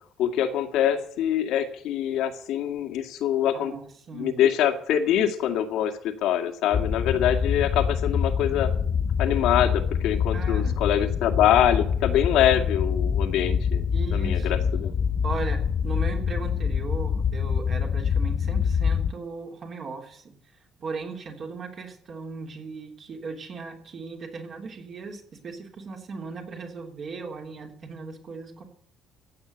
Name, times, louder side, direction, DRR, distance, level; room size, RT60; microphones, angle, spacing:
voice 1, 0.2-3.7 4.1-8.7 9.2-13.8 14.1-14.9, left 10 dB, 75° left, 5 dB, 2.2 m, -24 dB
voice 2, 3.5-4.4 10.3-10.8 13.9-14.7 15.2-20.3 20.8-28.6, right 4 dB, 40° right, 3 dB, 3.4 m, -37 dB
sound 1, 6.7-19.1, left 7 dB, 35° left, 0.6 m, -25 dB
15.0 x 8.8 x 8.2 m, 0.63 s
cardioid pair, 160°, 0 cm